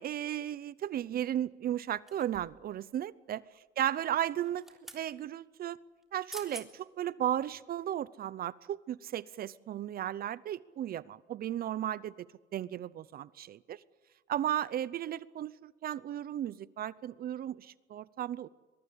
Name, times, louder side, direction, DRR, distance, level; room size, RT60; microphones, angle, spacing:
voice 1, 0.0-3.4 3.8-4.6 4.9-5.8 6.1-12.1 12.5-13.8 14.3-18.5, right 11 dB, 50° right, 19 dB, 0.7 m, -35 dB
sound 1, 2.1-2.7 4.4-5.1 6.0-6.1 6.3-6.7 7.2-7.4, equal, ahead, 3.5 m, -48 dB
22.5 x 22.5 x 8.7 m, 1.3 s
cardioid pair, 125°, 20 cm